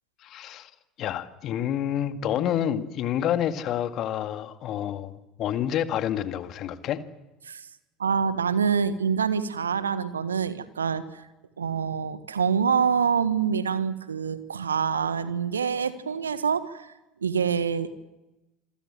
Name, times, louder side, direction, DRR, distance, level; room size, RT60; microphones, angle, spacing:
voice 1, 0.2-0.7 1.0-7.0, left 10 dB, 45° left, 9 dB, 2.0 m, -28 dB
voice 2, 8.0-11.2 11.6-16.9 17.2-17.9, right 6 dB, 80° right, 13 dB, 1.5 m, -26 dB
27.5 x 23.0 x 7.7 m, 1.0 s
figure-of-eight pair, 70°, 0 cm